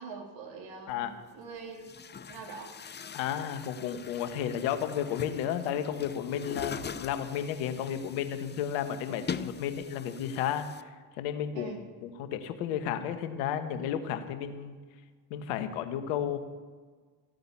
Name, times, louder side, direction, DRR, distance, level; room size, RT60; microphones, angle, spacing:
voice 1, 0.0-1.8 2.3-2.8 11.5-11.8, right 4 dB, 60° right, 0 dB, 3.7 m, -43 dB
Chatter / Gurgling / Tap, 0.9-1.0 1.7-10.8, left 6 dB, 20° left, 0.6 m, -43 dB
voice 2, 3.1-10.7 11.2-11.7 12.0-14.8 15.3-16.4, left 9 dB, 75° left, 9 dB, 1.4 m, -32 dB
15.0 x 9.2 x 7.2 m, 1.5 s
hypercardioid pair, 65°, 50 cm